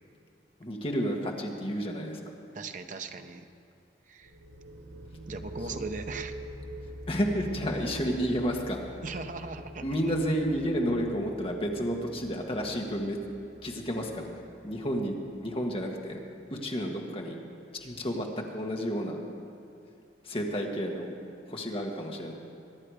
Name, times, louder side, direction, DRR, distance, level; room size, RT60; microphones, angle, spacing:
voice 1, 0.6-2.2 7.1-8.8 9.8-13.2 13.6-15.1 15.4-16.2 16.5-17.4 17.8-18.3 18.5-19.2 20.2-21.1 21.5-22.3, equal, 30° left, 1 dB, 1.6 m, -31 dB
voice 2, 2.5-3.5 4.1-4.4 5.3-6.3 9.0-9.9, right 3 dB, 45° right, 7 dB, 0.7 m, -38 dB
sound 1, 4.2-15.8, equal, 70° right, 1.1 m, -45 dB
23.0 x 9.9 x 4.9 m, 2.5 s
head